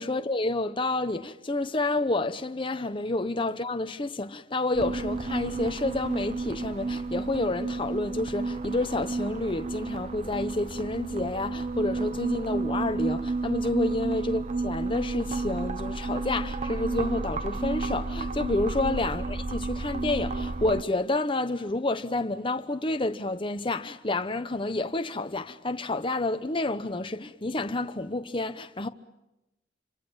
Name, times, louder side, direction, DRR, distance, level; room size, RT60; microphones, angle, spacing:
voice 1, 0.0-28.9, left 2 dB, 30° left, 1.0 m, -29 dB
sound 1, 4.7-20.8, right 3 dB, 40° right, 0.9 m, -31 dB
28.5 x 25.5 x 7.3 m
head